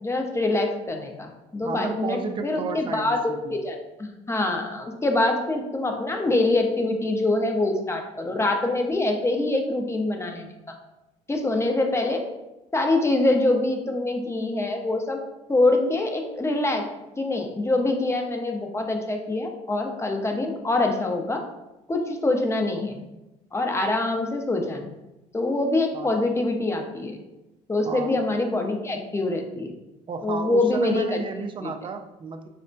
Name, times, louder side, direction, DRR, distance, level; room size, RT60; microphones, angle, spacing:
voice 1, 0.0-3.2 3.5-10.7 11.3-12.2 12.7-15.2 15.5-16.8 17.2-21.4 21.9-23.0 23.5-24.9 25.3-27.2 27.7-29.7 30.2-31.2 31.6-31.7, left 2 dB, 15° left, 3 dB, 0.6 m, -25 dB
voice 2, 1.6-3.5 25.9-26.1 27.9-28.2 30.1-32.5, right 4 dB, 30° right, 6 dB, 0.4 m, -32 dB
4.2 x 2.1 x 2.6 m, 0.99 s
supercardioid pair, 65°, 16 cm